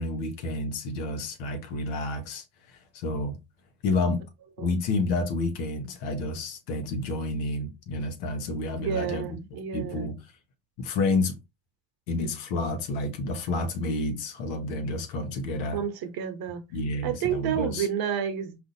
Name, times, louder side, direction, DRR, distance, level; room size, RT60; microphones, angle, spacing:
voice 1, 0.0-2.4 2.9-3.4 3.8-4.2 4.6-9.4 9.7-10.2 10.8-11.4 12.1-15.8 16.7-17.9, left 2 dB, 85° left, 0.9 m, -29 dB
voice 2, 8.7-10.1 15.7-16.6 17.0-18.6, right 8 dB, 65° right, 0.9 m, -30 dB
4.3 x 2.5 x 2.6 m
supercardioid pair, 75°, 40 cm